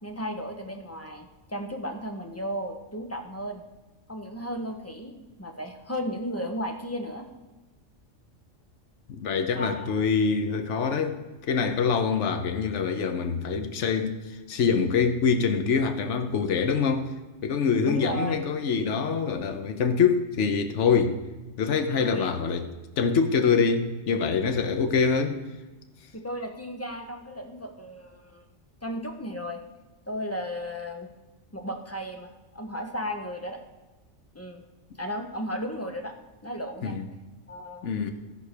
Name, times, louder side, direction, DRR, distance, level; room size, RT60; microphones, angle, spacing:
voice 1, 0.0-3.6 4.1-7.3 9.5-9.9 17.8-18.4 22.0-22.3 26.2-28.4 28.8-29.6 30.1-31.1 31.5-33.6 34.3-34.6 35.0-36.2 36.4-37.0 37.5-38.1, equal, 15° left, 0.8 m, -35 dB
voice 2, 9.1-17.1 17.4-21.2 21.6-22.7 23.0-25.4 36.8-37.0 37.8-38.1, left 5 dB, 70° left, 1.2 m, -25 dB
14.0 x 4.8 x 6.6 m
omnidirectional pair, 1.3 m